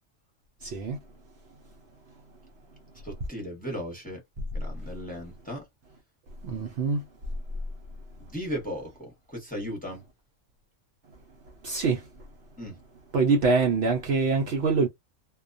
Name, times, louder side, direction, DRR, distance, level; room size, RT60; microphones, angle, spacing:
voice 1, 0.6-1.0 6.4-7.1 11.6-12.1 13.1-14.9, right 4 dB, 65° right, 0.7 m, -24 dB
voice 2, 3.0-4.2 4.5-5.7 8.3-10.0 12.6-12.8, equal, 10° left, 0.8 m, -36 dB
2.2 x 2.2 x 2.5 m
omnidirectional pair, 1.3 m